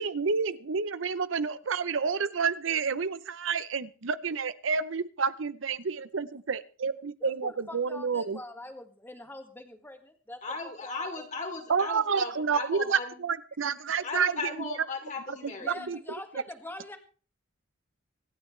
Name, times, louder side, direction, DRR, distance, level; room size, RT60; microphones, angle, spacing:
voice 1, 0.0-8.4 11.7-14.7 15.4-16.0, right 5 dB, 70° right, 15 dB, 0.7 m, -29 dB
voice 2, 7.2-10.4 10.8-11.3 15.6-17.0, left 1 dB, 10° left, 5 dB, 1.8 m, -44 dB
voice 3, 10.4-13.2 14.0-15.7, left 3 dB, 35° left, 4 dB, 3.0 m, -37 dB
25.5 x 9.5 x 3.2 m, 0.38 s
head